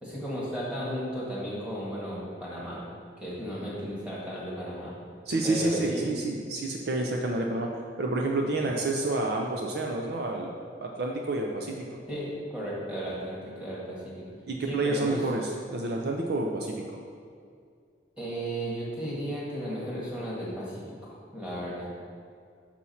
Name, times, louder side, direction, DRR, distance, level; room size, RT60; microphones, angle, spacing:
voice 1, 0.0-2.8 3.2-4.9 5.4-6.1 12.1-12.3 12.5-14.2 14.7-15.2 18.2-21.9, equal, 5° right, -7 dB, 1.6 m, -34 dB
voice 2, 5.3-10.5 10.8-12.0 14.5-17.0, right 2 dB, 55° right, 0 dB, 0.5 m, -29 dB
6.1 x 5.7 x 4.1 m, 2.3 s
head